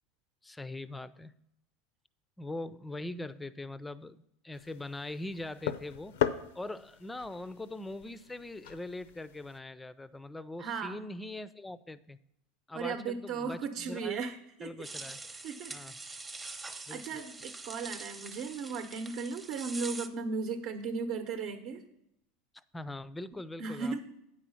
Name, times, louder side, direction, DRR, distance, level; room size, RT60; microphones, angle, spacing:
voice 1, 0.4-1.3 2.4-6.2 6.5-12.2 12.7-14.2 14.6-15.2 15.7-16.0 16.9-17.2 22.7-24.0, left 2 dB, 10° left, 16 dB, 0.4 m, -42 dB
sound 1, 4.5-9.6, left 10 dB, 85° left, 0.6 m, -38 dB
voice 2, 10.6-11.0 12.7-14.7 15.4-16.2 16.9-21.9 23.6-24.0, right 5 dB, 60° right, 5 dB, 0.9 m, -36 dB
sound 2, 14.8-20.1, right 3 dB, 15° right, 0.8 m, -44 dB
8.7 x 5.0 x 7.0 m, 0.80 s
supercardioid pair, 110°, 0 cm